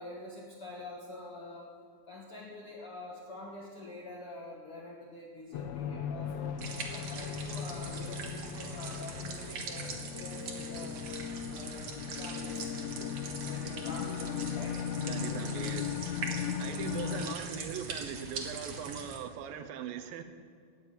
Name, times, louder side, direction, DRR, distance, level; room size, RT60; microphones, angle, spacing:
voice 1, 0.0-1.7 2.1-6.6 6.9-11.1 11.5-12.6 13.4-14.8 15.1-15.7 16.2-16.5, left 2 dB, 65° left, -3 dB, 1.4 m, -46 dB
sound 1, 5.5-17.4, left 8 dB, 80° left, 2.1 m, -37 dB
sound 2, 6.6-19.2, right 4 dB, 55° right, 1.7 m, -42 dB
voice 2, 15.1-16.2 16.6-20.2, right 9 dB, 85° right, 7 dB, 2.1 m, -40 dB
18.0 x 7.5 x 8.7 m, 2.3 s
omnidirectional pair, 5.0 m